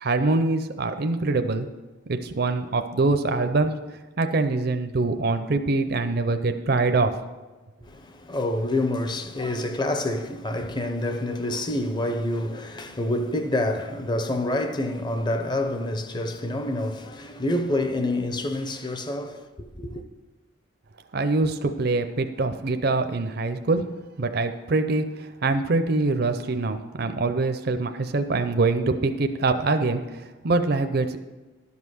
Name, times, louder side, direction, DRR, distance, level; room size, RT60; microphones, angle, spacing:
voice 1, 0.0-1.7 2.1-3.7 4.2-7.1 21.1-23.8 24.2-31.2, right 3 dB, 50° right, 0.5 m, -24 dB
voice 2, 7.8-20.0, left 1 dB, 20° left, 0.6 m, -27 dB
12.0 x 5.5 x 6.2 m
head